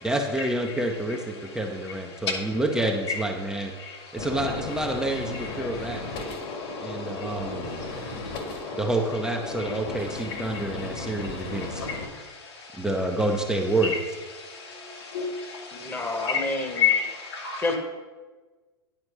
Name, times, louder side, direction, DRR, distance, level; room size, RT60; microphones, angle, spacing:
voice 1, 0.0-3.7 4.1-6.0 6.8-7.8 8.8-11.8 12.7-14.0, right 1 dB, 5° right, 1 dB, 0.8 m, -28 dB
Gunshot gunfire, 4.2-12.1, left 3 dB, 50° left, 1.8 m, -35 dB
voice 2, 14.4-15.9 16.8-17.6, left 8 dB, 75° left, -2 dB, 2.4 m, -28 dB
voice 3, 15.7-17.0 17.6-17.8, left 2 dB, 15° left, 3 dB, 1.3 m, -29 dB
9.9 x 4.3 x 6.2 m, 1.3 s
hypercardioid pair, 110°, 14 cm